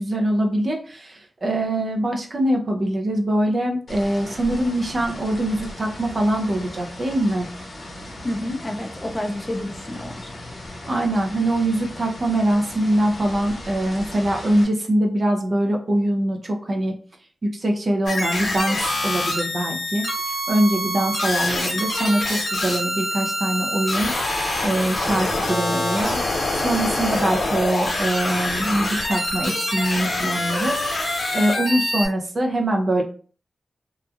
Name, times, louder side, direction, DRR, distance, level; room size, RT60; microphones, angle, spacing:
voice 1, 0.0-7.5 10.9-16.9 17.4-24.1 24.6-26.2 26.5-30.8 31.3-33.0, right 1 dB, 45° right, 2 dB, 0.6 m, -23 dB
sound 1, 3.9-14.7, left 1 dB, 60° left, 0.9 m, -37 dB
voice 2, 8.2-10.3, left 1 dB, 20° left, 4 dB, 0.4 m, -29 dB
sound 2, 18.1-32.1, left 1 dB, 85° left, 1.1 m, -25 dB
2.9 x 2.3 x 2.4 m, 0.41 s
wide cardioid pair, 90°, 0 cm